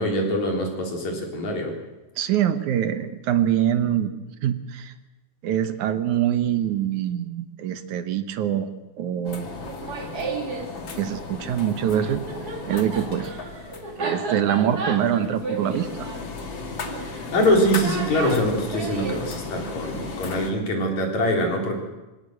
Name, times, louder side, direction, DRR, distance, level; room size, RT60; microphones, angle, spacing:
voice 1, 0.0-1.7 17.0-21.8, equal, 60° left, 1 dB, 5.0 m, -24 dB
voice 2, 2.2-4.1 4.4-4.9 5.4-8.7 9.0-9.5 11.0-12.2 12.7-13.3 14.0-16.1, right 10 dB, 70° right, 10 dB, 2.4 m, -24 dB
sound 1, 9.2-20.5, left 4 dB, 40° left, 2.5 m, -36 dB
Laughter, 9.6-10.7 11.9-19.2, right 3 dB, 30° right, 2.6 m, -33 dB
24.5 x 17.5 x 7.9 m, 1.1 s
omnidirectional pair, 3.7 m